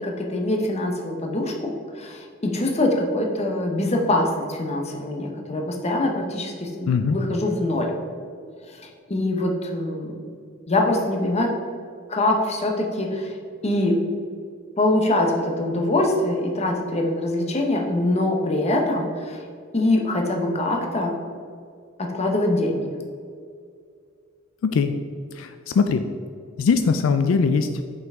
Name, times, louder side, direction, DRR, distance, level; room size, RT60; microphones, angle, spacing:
voice 1, 0.0-7.9 8.7-10.1 10.7-11.6 12.1-13.3 13.6-14.1 14.8-19.4 19.7-21.1 22.0-22.8, left 1 dB, 35° left, 1 dB, 0.8 m, -24 dB
voice 2, 6.9-7.2 24.6-24.9 25.3-26.0 26.6-27.7, left 5 dB, 80° left, 8 dB, 0.3 m, -21 dB
5.8 x 5.5 x 3.6 m, 2.2 s
head